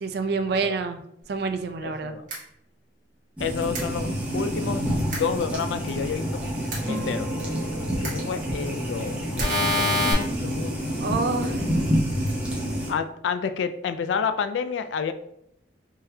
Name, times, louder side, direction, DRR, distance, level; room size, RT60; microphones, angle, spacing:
voice 1, 0.0-1.0 1.3-2.1 11.0-11.7, right 4 dB, 60° right, 7 dB, 0.4 m, -27 dB
voice 2, 1.8-2.3 3.4-6.4 6.9-7.3 8.0-10.8 11.3-11.6 12.9-15.1, left 6 dB, 85° left, 10 dB, 0.3 m, -30 dB
sound 1, 2.3-2.4 3.8-3.9 5.1-5.2 6.7-6.8 8.0-8.1 9.4-10.1, left 1 dB, 45° right, 1.1 m, -24 dB
sound 2, 3.4-12.9, equal, 10° right, 0.7 m, -28 dB
sound 3, 6.8-11.7, equal, 25° right, 1.1 m, -39 dB
3.8 x 2.7 x 2.7 m, 0.75 s
head